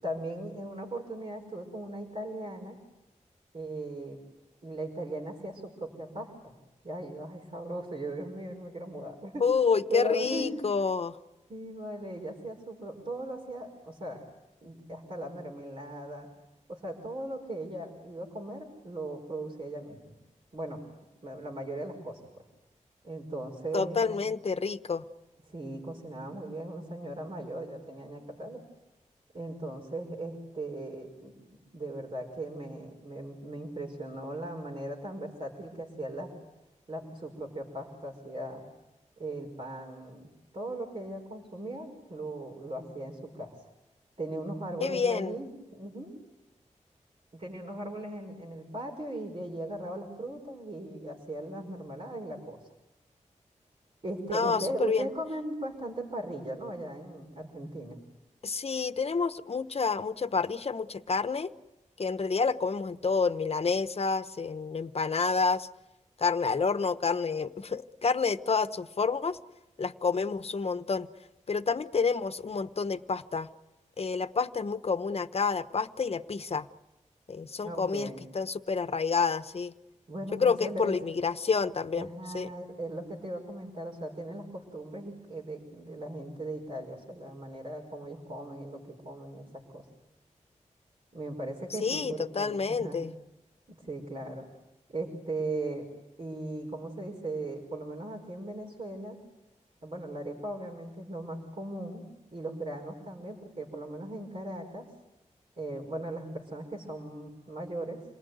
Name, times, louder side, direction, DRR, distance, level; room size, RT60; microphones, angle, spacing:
voice 1, 0.0-2.8 3.5-4.2 4.6-6.5 6.8-9.4 9.9-10.6 11.5-14.2 14.6-16.3 16.7-20.1 20.5-20.8 21.2-22.4 23.0-24.2 25.5-28.6 29.3-36.4 36.9-38.6 39.2-43.6 44.2-46.2 47.3-52.7 54.0-58.0 77.6-78.2 80.1-81.0 81.9-89.8 91.1-93.0 93.7-94.5 94.9-95.8 96.2-99.2 99.8-102.1 102.3-104.9 105.6-108.2, right 1 dB, 50° right, -1 dB, 5.1 m, -38 dB
voice 2, 9.4-11.1 23.7-25.0 44.8-45.3 54.3-55.1 58.4-61.5 62.0-65.7 66.2-69.4 69.8-71.1 71.5-73.5 74.0-76.7 77.3-79.7 80.4-82.1 82.3-82.5 91.8-93.1, left 5 dB, 50° left, 12 dB, 1.0 m, -29 dB
28.0 x 19.5 x 9.4 m, 0.98 s
wide cardioid pair, 80°, 13 cm